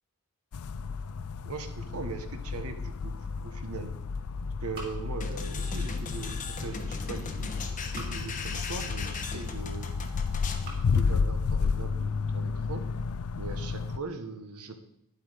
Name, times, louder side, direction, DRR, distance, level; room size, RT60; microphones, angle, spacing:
sound 1, 0.5-14.0, left 5 dB, 70° left, 0.4 m, -32 dB
voice 1, 1.4-3.1 3.4-3.9 4.6-7.5 7.9-9.9 10.8-12.8 13.4-14.7, right 3 dB, 75° right, 8 dB, 1.2 m, -40 dB
sound 2, 2.9-3.8 4.1-5.6 5.9-6.7 7.6-8.5 9.0-9.8 10.3-10.9, right 2 dB, 45° right, 3.4 m, -49 dB
sound 3, 5.2-10.7, left 4 dB, 35° left, 1.1 m, -39 dB
10.0 x 8.0 x 5.0 m, 0.79 s
head